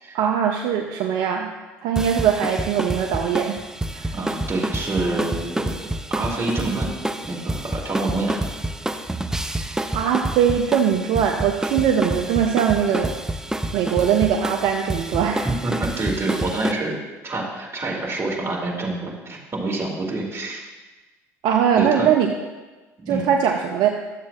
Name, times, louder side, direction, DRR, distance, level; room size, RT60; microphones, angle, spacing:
voice 1, 0.1-1.5 1.8-3.6 3.9-4.1 9.9-13.1 13.7-15.5 21.4-22.3 23.1-23.9, right 8 dB, 65° right, 3 dB, 0.6 m, -21 dB
sound 1, 2.0-16.7, right 1 dB, 5° right, 0.5 m, -28 dB
voice 2, 4.1-5.8 6.1-6.9 7.2-8.4 15.4-17.0 17.2-20.6 21.8-22.1 23.0-23.3, right 2 dB, 35° right, -2 dB, 2.4 m, -27 dB
12.0 x 7.3 x 2.5 m, 1.2 s
hypercardioid pair, 65°, 8 cm